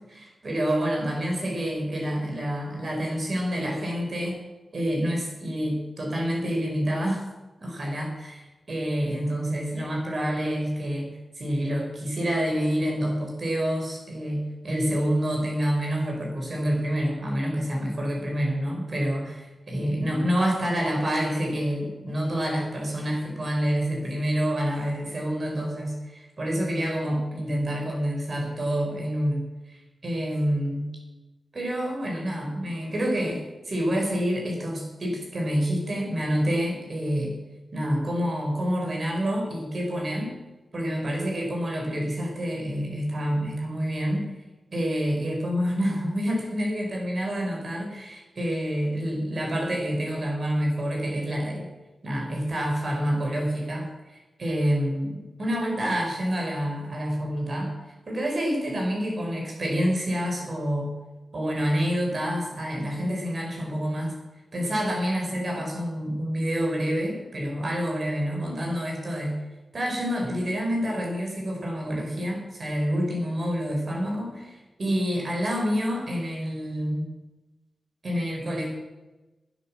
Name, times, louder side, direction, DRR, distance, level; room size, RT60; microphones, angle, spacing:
voice 1, 0.1-4.4 4.7-7.3 7.6-11.1 11.4-30.9 31.5-37.4 37.7-40.4 40.7-44.3 44.7-51.7 52.0-53.9 54.4-57.7 58.1-60.9 61.3-64.1 64.5-69.4 69.7-77.1 78.0-78.7, equal, 55° right, 1 dB, 5.3 m, -27 dB
12.0 x 9.9 x 7.6 m, 1.1 s
cardioid pair, 55°, 0 cm